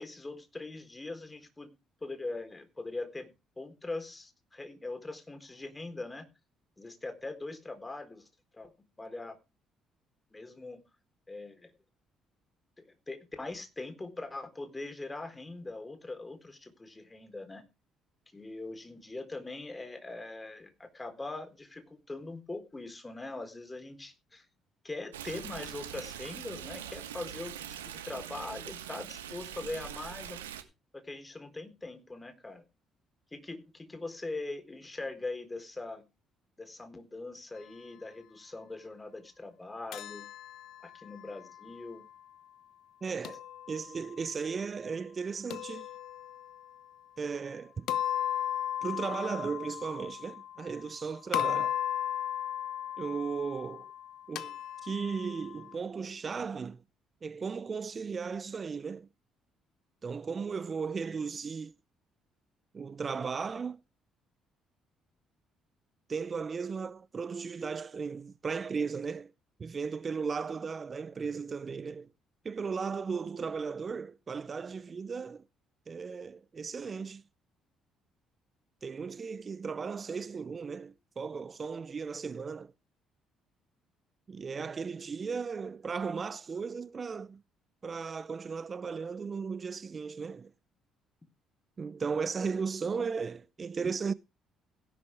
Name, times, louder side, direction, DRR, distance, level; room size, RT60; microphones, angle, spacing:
voice 1, 0.0-1.7 2.0-6.3 6.8-8.3 8.5-8.7 9.0-9.4 10.3-10.8 11.3-11.7 12.8-17.6 18.3-24.5 24.8-30.4 30.9-32.6 33.3-36.0 36.6-40.3 40.8-42.0, left 2 dB, 20° left, 4.0 m, -41 dB
Stream, 25.1-30.6, right 10 dB, 85° right, 1.3 m, -43 dB
sound 1, 39.9-42.0 43.2-44.2 45.5-46.7 47.9-51.0 51.3-55.7, left 11 dB, 65° left, 1.0 m, -36 dB
voice 2, 43.0-43.4 43.7-45.9 47.2-47.9 48.8-51.8 53.0-53.9 54.3-54.6 54.8-56.8 57.2-59.1 60.0-61.7 62.7-63.8 66.1-69.3 69.6-72.1 72.4-75.4 75.9-77.2 78.8-82.7 84.3-87.4 87.8-90.5 91.8-94.1, right 5 dB, 40° right, 0.6 m, -36 dB
16.5 x 11.0 x 3.6 m
hypercardioid pair, 50°, 0 cm